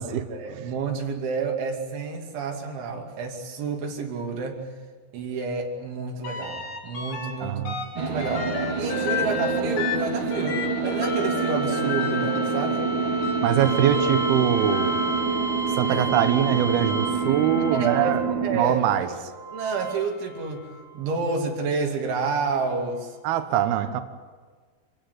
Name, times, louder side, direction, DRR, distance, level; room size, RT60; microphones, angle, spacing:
voice 1, 0.1-4.7 5.1-7.6 8.0-12.8 15.9-16.0 17.7-18.2 18.4-18.8 19.1-19.2 19.5-20.7 20.9-23.2, right 4 dB, 90° right, 2 dB, 5.1 m, -29 dB
sound 1, 6.2-7.3 7.7-18.4 19.3-20.8 22.6-22.7, left 1 dB, 85° left, 5.6 m, -30 dB
voice 2, 7.4-7.8 13.4-15.0 15.7-18.2 18.5-19.1 23.2-24.0, right 10 dB, 70° right, 9 dB, 2.7 m, -23 dB
sound 2, 7.9-18.6, right 5 dB, 35° right, 2.4 m, -28 dB
26.0 x 16.0 x 9.6 m, 1.5 s
omnidirectional pair, 5.2 m